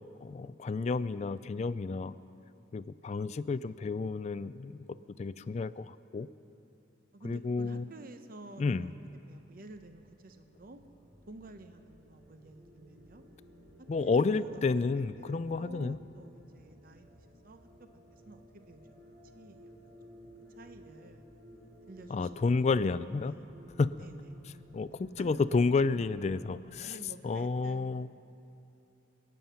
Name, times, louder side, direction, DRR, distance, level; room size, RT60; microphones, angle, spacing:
voice 1, 0.2-2.1 2.7-4.8 5.2-6.3 7.2-7.8 8.6-8.9 13.9-16.0 22.1-23.3 23.8-24.0 24.7-27.0 27.2-28.1, left 4 dB, 35° left, 15 dB, 0.3 m, -30 dB
voice 2, 7.1-8.9 9.3-10.8 11.3-13.2 13.8-20.0 20.6-21.3 21.9-23.0 23.2-23.5 24.0-24.4 25.2-25.7 26.8-27.9, right 2 dB, 50° right, 8 dB, 0.7 m, -51 dB
sound 1, 9.0-26.6, equal, 85° right, 3.2 m, -56 dB
27.0 x 9.2 x 5.7 m, 2.8 s
head